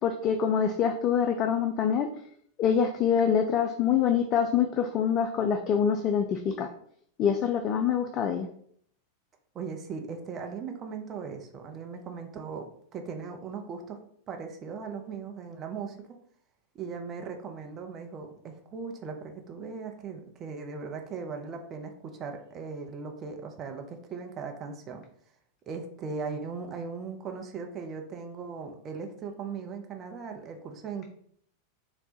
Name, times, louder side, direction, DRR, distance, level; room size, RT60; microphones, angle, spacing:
voice 1, 0.0-2.1 2.6-6.7 7.2-8.5, left 7 dB, 35° left, 6 dB, 0.3 m, -25 dB
voice 2, 9.5-14.0 14.3-16.1 16.7-25.0 25.7-31.0, right 5 dB, 30° right, 4 dB, 0.6 m, -38 dB
3.9 x 2.2 x 4.1 m, 0.63 s
figure-of-eight pair, 90°, 0 cm